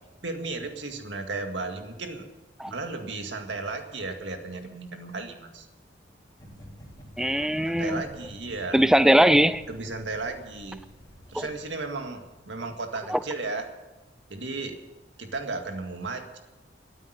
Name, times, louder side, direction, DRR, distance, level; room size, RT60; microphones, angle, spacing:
voice 1, 0.2-2.2 2.7-5.7 7.6-8.9 9.7-10.8 11.3-13.7 14.3-14.8 15.2-16.4, right 3 dB, 90° right, 5 dB, 2.0 m, -34 dB
sound 1, 6.4-12.3, right 1 dB, 20° left, 3.6 m, -49 dB
voice 2, 7.2-8.0 8.7-9.6 11.3-11.5 13.1-13.2, equal, 5° right, 14 dB, 0.4 m, -20 dB
13.5 x 9.0 x 9.7 m, 1.1 s
head